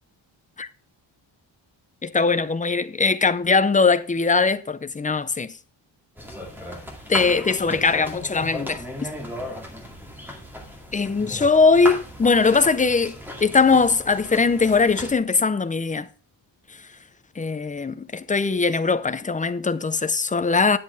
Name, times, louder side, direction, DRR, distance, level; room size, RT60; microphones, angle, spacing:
voice 1, 2.0-5.5 7.1-8.8 10.9-16.1 17.4-20.8, left 4 dB, 20° left, 0.4 m, -20 dB
sound 1, 6.2-15.1, left 1 dB, 5° right, 2.2 m, -36 dB
10.5 x 7.2 x 3.4 m
wide cardioid pair, 175°, 46 cm